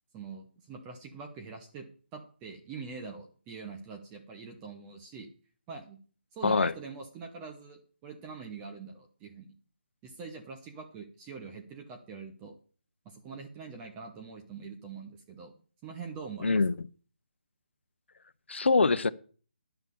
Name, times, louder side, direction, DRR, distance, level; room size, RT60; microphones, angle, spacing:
voice 1, 0.1-1.9 2.1-5.3 5.7-6.0 6.3-9.6 10.0-12.5 13.0-15.5 15.8-16.6, right 5 dB, 15° right, 0.9 m, -44 dB
voice 2, 16.4-16.7 18.5-19.1, left 4 dB, 80° left, 0.7 m, -24 dB
10.5 x 5.7 x 6.8 m
hypercardioid pair, 165°, 6 cm